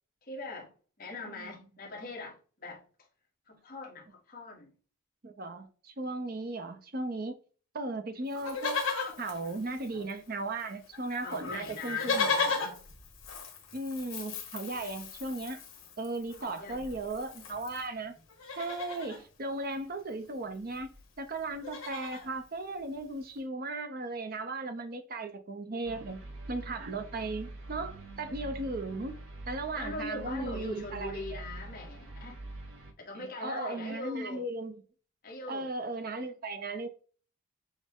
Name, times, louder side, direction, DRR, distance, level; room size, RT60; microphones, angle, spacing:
voice 1, 0.3-0.7 1.0-2.8 3.5-4.7 11.2-12.8 16.4-17.0 29.7-32.4 33.0-34.4 35.2-35.7, left 2 dB, 40° left, 1.2 m, -41 dB
voice 2, 5.2-7.3 7.7-8.8 9.2-12.3 13.7-15.6 16.0-18.1 18.6-20.9 21.2-26.2 26.5-29.2 29.5-31.4 33.1-34.8 35.5-36.9, right 2 dB, 40° right, 0.6 m, -36 dB
Livestock farm animals working animals, 8.3-10.3 10.6-10.7 10.9-17.9 18.3-19.2 20.4-20.5 20.7-21.0 21.3-22.3 22.9-23.0, left 4 dB, 70° left, 1.3 m, -36 dB
sound 1, 25.8-32.9, right 2 dB, 70° right, 0.9 m, -44 dB
6.3 x 2.1 x 3.5 m
head